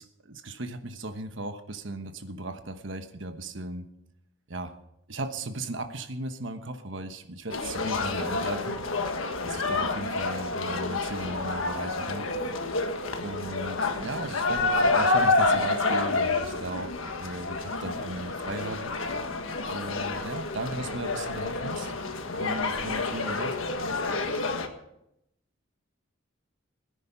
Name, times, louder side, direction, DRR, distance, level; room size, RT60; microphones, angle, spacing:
voice 1, 0.0-3.9 4.5-4.7 5.1-8.8 9.4-12.3 13.2-16.9 17.2-18.9 19.7-21.9 22.4-23.6, right 2 dB, 60° right, 8 dB, 1.1 m, -36 dB
sound 1, 7.5-24.7, left 3 dB, 75° left, 1.5 m, -28 dB
17.5 x 10.5 x 5.6 m, 0.81 s
head